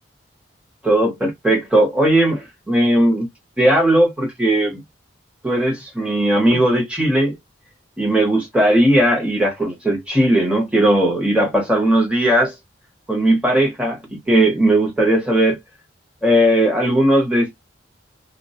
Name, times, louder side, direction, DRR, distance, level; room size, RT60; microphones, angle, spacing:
voice 1, 0.8-3.3 3.6-4.8 5.4-7.4 8.0-12.5 13.1-15.6 16.2-17.6, right 1 dB, 5° right, 0.7 m, -17 dB
2.2 x 2.1 x 2.7 m
head